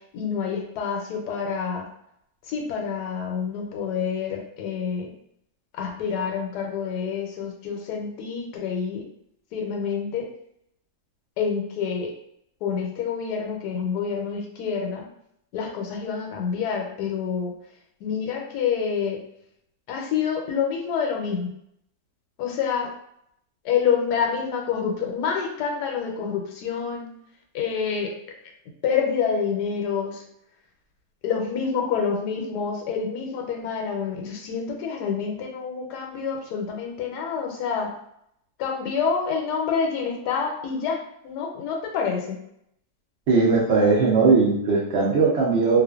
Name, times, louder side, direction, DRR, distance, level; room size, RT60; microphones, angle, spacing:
voice 1, 0.1-1.9 2.4-5.1 5.7-9.0 9.5-10.3 11.4-12.1 12.6-15.1 15.5-17.5 18.0-19.2 19.9-21.5 22.4-22.9 23.6-27.1 27.5-28.1 28.8-30.2 31.2-37.9 38.6-42.4, left 6 dB, 80° left, 2 dB, 1.1 m, -27 dB
voice 2, 43.3-45.8, right 4 dB, 75° right, -3 dB, 0.6 m, -19 dB
2.4 x 2.4 x 2.3 m, 0.74 s
omnidirectional pair, 1.7 m